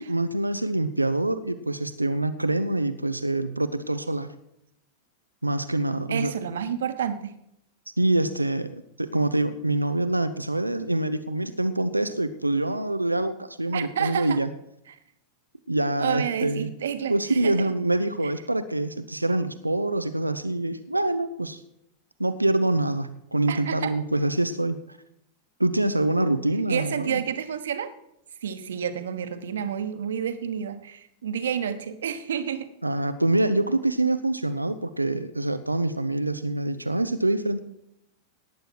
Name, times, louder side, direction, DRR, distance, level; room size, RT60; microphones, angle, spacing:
voice 1, 0.0-4.3 5.4-6.3 8.0-14.5 15.7-16.7 17.1-21.6 22.2-24.8 25.6-27.2 32.8-37.6, right 2 dB, 85° right, 12 dB, 0.6 m, -25 dB
voice 2, 6.1-7.4 13.7-14.4 14.9-15.0 16.0-17.7 18.2-18.3 23.5-23.9 26.7-27.9 28.4-32.7, right 8 dB, 65° right, 10 dB, 1.3 m, -30 dB
18.0 x 9.1 x 4.7 m, 0.80 s
figure-of-eight pair, 90°, 0 cm